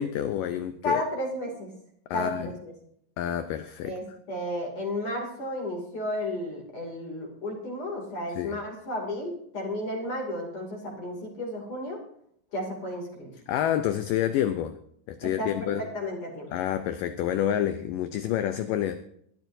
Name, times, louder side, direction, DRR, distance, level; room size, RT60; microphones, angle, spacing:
voice 1, 0.0-1.0 2.1-2.5 3.2-3.9 8.4-8.6 13.5-14.7 15.1-15.8 16.5-19.0, left 11 dB, 85° left, 1.9 m, -28 dB
voice 2, 0.8-1.7 2.1-2.7 3.8-12.0 12.5-13.3 15.2-16.5, left 1 dB, 40° left, 3.1 m, -33 dB
20.5 x 12.5 x 2.7 m
omnidirectional pair, 4.6 m